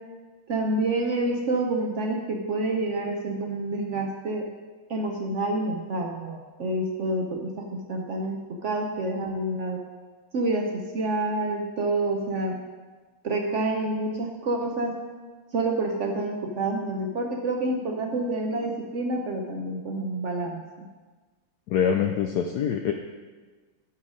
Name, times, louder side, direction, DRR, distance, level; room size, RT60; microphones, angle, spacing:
voice 1, 0.5-4.5 4.9-9.8 10.3-12.6 13.2-15.0 15.5-20.9, right 2 dB, 75° right, 1 dB, 0.6 m, -28 dB
voice 2, 21.7-22.9, left 8 dB, 75° left, 4 dB, 0.9 m, -24 dB
11.0 x 4.8 x 5.0 m, 1.4 s
omnidirectional pair, 2.2 m